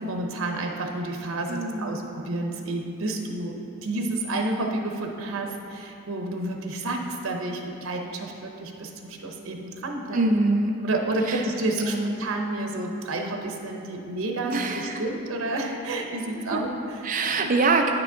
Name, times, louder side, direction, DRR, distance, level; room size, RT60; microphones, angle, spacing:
voice 1, 0.0-10.2 10.8-17.0 17.4-17.5, right 2 dB, 90° right, 2 dB, 0.8 m, -30 dB
voice 2, 1.5-2.1 10.1-10.8 11.3-11.4 11.8-12.1 14.5-15.0 16.3-16.6 17.0-17.9, right 3 dB, 40° right, 3 dB, 0.6 m, -24 dB
9.0 x 6.0 x 3.8 m, 2.8 s
head